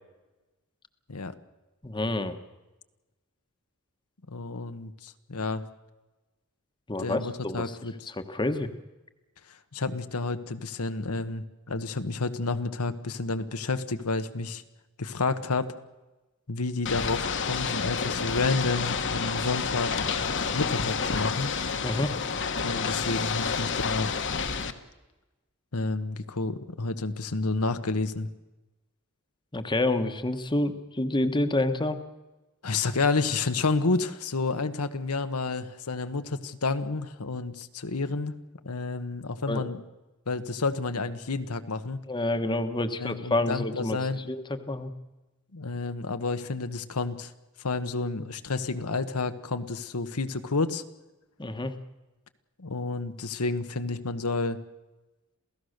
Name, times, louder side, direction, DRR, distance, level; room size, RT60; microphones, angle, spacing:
voice 1, 1.8-2.4 6.9-7.6 8.3-8.7 21.8-22.1 29.5-32.0 39.5-39.6 42.1-44.0 44.3-44.9 51.4-51.7, left 2 dB, 20° left, 9 dB, 1.2 m, -28 dB
voice 2, 4.3-5.6 7.0-8.1 9.5-14.6 15.0-15.7 16.5-19.9 20.5-21.5 22.6-24.1 25.7-28.3 32.6-38.3 38.6-39.8 40.3-42.0 42.9-44.2 45.5-47.3 47.6-50.8 52.6-54.6, left 3 dB, 85° left, 9 dB, 1.2 m, -30 dB
Ocean / Boat Water vehicle, 16.9-24.7, left 5 dB, 55° left, 1.4 m, -29 dB
27.5 x 16.5 x 6.6 m, 1.1 s
head